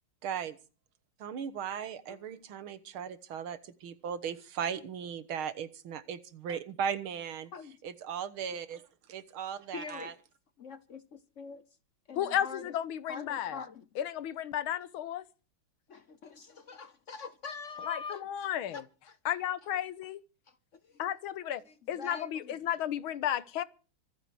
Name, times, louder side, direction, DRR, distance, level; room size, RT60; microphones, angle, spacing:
voice 1, 0.2-0.6 1.2-7.5 7.8-8.8 9.1-10.1, right 8 dB, 85° right, 2.1 m, -37 dB
voice 2, 9.7-10.2 10.6-11.6 12.1-12.7 13.1-13.9 15.9-19.2 20.5-20.6 21.7-22.6, left 5 dB, 50° left, 0.9 m, -44 dB
voice 3, 12.2-13.6 14.0-15.2 17.9-18.8 19.2-20.2 21.0-21.6 21.9-23.6, left 11 dB, 85° left, 1.8 m, -33 dB
25.0 x 9.4 x 4.7 m
omnidirectional pair, 2.2 m